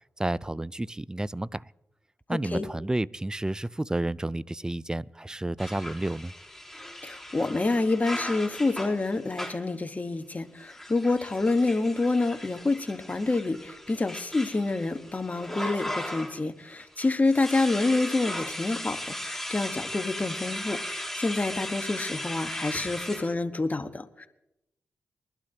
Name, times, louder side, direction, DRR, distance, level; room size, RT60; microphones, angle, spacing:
voice 1, 0.2-1.7 2.3-6.3, right 1 dB, 15° right, 0.4 m, -31 dB
voice 2, 2.3-2.7 7.0-24.3, left 3 dB, 35° left, 1.4 m, -28 dB
sound 1, 5.6-9.7 10.6-16.5 16.8-23.3, left 1 dB, ahead, 4.4 m, -37 dB
22.5 x 12.0 x 2.9 m
supercardioid pair, 45°, 5 cm